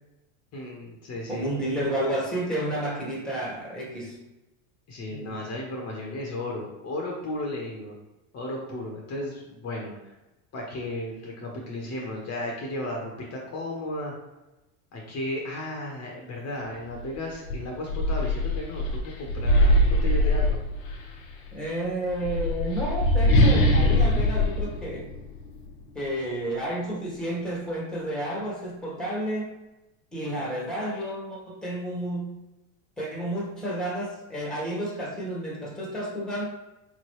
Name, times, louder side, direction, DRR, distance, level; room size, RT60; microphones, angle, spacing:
voice 1, 0.5-1.5 4.9-8.0 8.3-10.1 10.5-14.1 14.9-20.6, left 1 dB, 40° left, -1 dB, 1.0 m, -34 dB
voice 2, 1.3-4.2 5.1-5.4 21.5-25.1 25.9-29.5 30.1-32.3 33.0-36.4, right 1 dB, ahead, -3 dB, 1.3 m, -31 dB
sound 1, 16.9-17.1 17.5-21.1 22.0-25.7, left 1 dB, 80° left, 0.9 m, -22 dB
3.8 x 3.1 x 3.1 m, 1.0 s
supercardioid pair, 100°, 40 cm